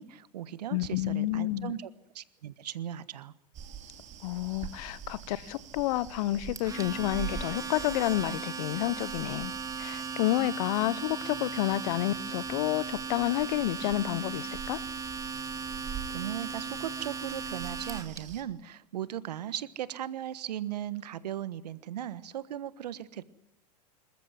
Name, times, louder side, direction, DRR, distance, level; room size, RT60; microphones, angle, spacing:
voice 1, 0.0-1.9 2.1-3.3 16.1-23.2, right 11 dB, 80° right, 1.4 m, -37 dB
voice 2, 0.7-1.8 4.2-9.5 9.8-14.8, left 15 dB, 60° left, 1.1 m, -30 dB
sound 1, 3.5-18.4, right 7 dB, 35° right, 3.2 m, -45 dB
Domestic sounds home sounds, 6.6-18.2, right 5 dB, 15° right, 2.5 m, -37 dB
27.0 x 14.5 x 9.5 m
hypercardioid pair, 100°, 21 cm